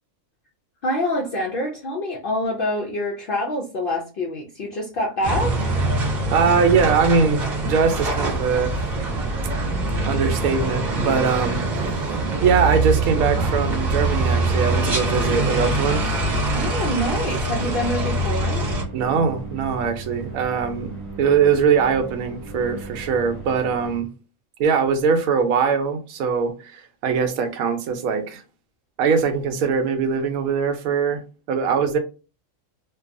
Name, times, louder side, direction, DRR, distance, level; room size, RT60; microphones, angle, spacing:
voice 1, 0.8-5.7 16.5-18.7, left 1 dB, 75° left, 0.5 m, -26 dB
sound 1, 5.2-18.8, right 2 dB, 40° right, 0.7 m, -23 dB
voice 2, 6.3-8.7 10.1-11.6 11.9-16.0 18.9-20.9 21.2-24.1 24.6-28.4 29.0-31.2 31.5-32.0, right 6 dB, 80° right, 1.0 m, -21 dB
sound 2, 15.1-24.0, right 3 dB, 15° left, 0.4 m, -36 dB
2.6 x 2.3 x 2.5 m
omnidirectional pair, 1.5 m